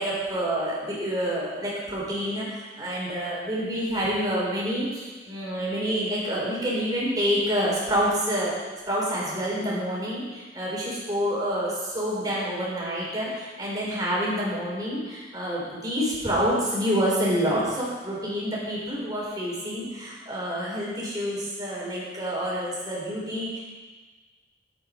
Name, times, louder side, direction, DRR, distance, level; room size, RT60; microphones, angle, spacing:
voice 1, 0.0-8.5 8.9-23.6, equal, 20° right, -6 dB, 3.7 m, -28 dB
13.5 x 8.5 x 5.1 m, 1.3 s
head